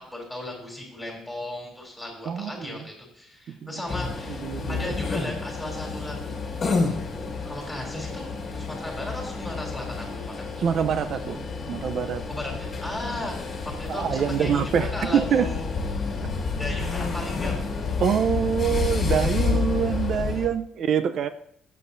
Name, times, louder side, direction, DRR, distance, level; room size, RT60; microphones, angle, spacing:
voice 1, 0.1-4.4 4.7-6.5 7.4-8.3 8.7-10.5 12.3-13.3 13.8-15.6 15.9-16.0 16.6-17.7, left 1 dB, 5° left, -1 dB, 3.2 m, -36 dB
voice 2, 2.3-2.9 3.6-3.8 4.4-5.0 10.6-12.2 13.9-15.5 18.0-21.3, right 8 dB, 50° right, 11 dB, 0.6 m, -25 dB
sound 1, 3.9-20.5, left 4 dB, 35° left, 1.7 m, -29 dB
16.5 x 7.5 x 2.7 m, 0.70 s
cardioid pair, 145°, 0 cm